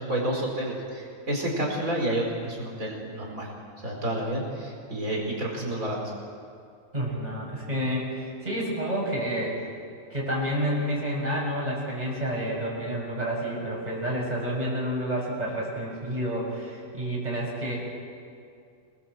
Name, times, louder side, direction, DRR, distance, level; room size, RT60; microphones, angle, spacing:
voice 1, 0.0-3.5 3.8-6.0, right 1 dB, 70° right, -1 dB, 5.3 m, -30 dB
voice 2, 6.9-9.6 10.1-17.8, equal, 30° right, -4 dB, 6.5 m, -29 dB
28.0 x 20.0 x 7.8 m, 2.4 s
omnidirectional pair, 1.5 m